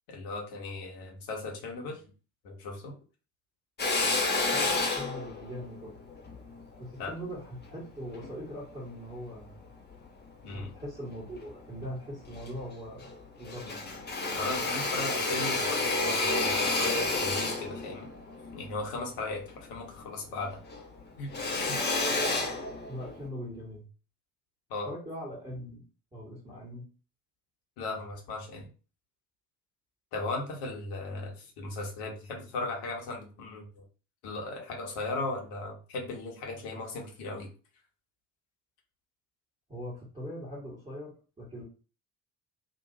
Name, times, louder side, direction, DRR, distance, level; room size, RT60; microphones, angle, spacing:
voice 1, 0.1-2.0 2.4-2.9 7.0-7.1 10.4-10.7 14.4-18.1 18.5-20.5 21.2-21.3 21.6-21.8 24.7-24.9 27.8-28.7 30.1-33.8 34.2-37.5, left 2 dB, 55° left, 1 dB, 1.2 m, -37 dB
Drill, 3.8-8.3 8.9-10.1 10.5-11.4 11.8-11.9 12.2-13.2 13.4-20.1 20.4-23.3, left 3 dB, 20° left, 0.9 m, -31 dB
voice 2, 4.5-5.9 6.8-9.6 10.5-13.1 13.4-14.0 22.9-23.9 24.9-25.8 26.1-26.9 39.7-41.6, equal, 15° right, -7 dB, 1.7 m, -41 dB
3.0 x 2.6 x 2.7 m, 0.36 s
figure-of-eight pair, 55°, 47 cm